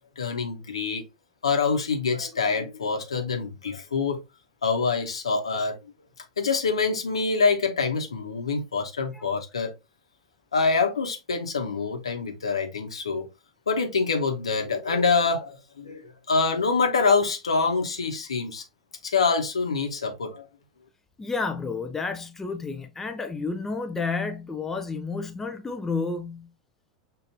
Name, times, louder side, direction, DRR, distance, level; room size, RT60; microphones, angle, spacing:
voice 1, 0.2-1.0 1.4-4.2 4.6-5.8 6.4-9.7 10.5-13.3 13.7-18.6 19.0-20.4, left 4 dB, 70° left, 0.9 m, -25 dB
voice 2, 21.2-26.5, left 4 dB, 10° left, 0.5 m, -31 dB
6.4 x 2.5 x 2.5 m
figure-of-eight pair, 90°, 3 cm